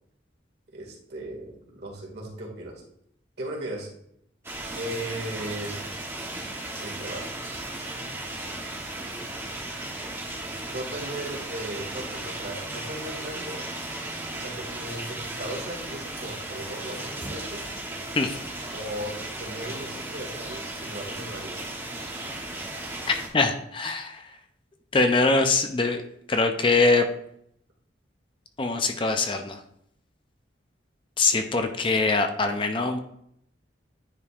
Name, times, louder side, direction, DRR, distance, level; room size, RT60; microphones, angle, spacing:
voice 1, 0.7-2.8 3.4-3.9 4.7-6.0 6.8-7.3 10.7-13.6 14.3-17.7 18.7-21.6, right 1 dB, 55° right, -2 dB, 2.1 m, -37 dB
sound 1, 4.4-23.3, right 2 dB, 15° right, 1.0 m, -36 dB
voice 2, 23.1-24.4 24.9-26.0 26.3-27.0 28.6-29.6 31.2-33.0, left 3 dB, 25° left, 6 dB, 0.5 m, -23 dB
9.6 x 5.2 x 2.4 m, 0.71 s
head